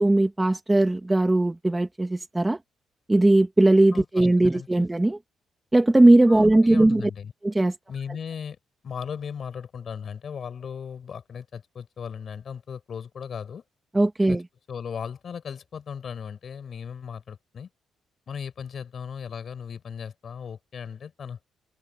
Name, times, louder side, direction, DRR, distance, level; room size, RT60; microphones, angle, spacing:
voice 1, 0.0-2.6 3.1-5.2 5.7-7.0 7.4-7.7 13.9-14.4, right 2 dB, 15° right, 2.2 m, -19 dB
voice 2, 3.9-4.9 6.3-7.3 7.9-8.6 8.8-13.6 14.3-14.4 14.7-17.7 18.3-21.4, left 7 dB, 50° left, 6.1 m, -37 dB
cardioid pair, 90°, 0 cm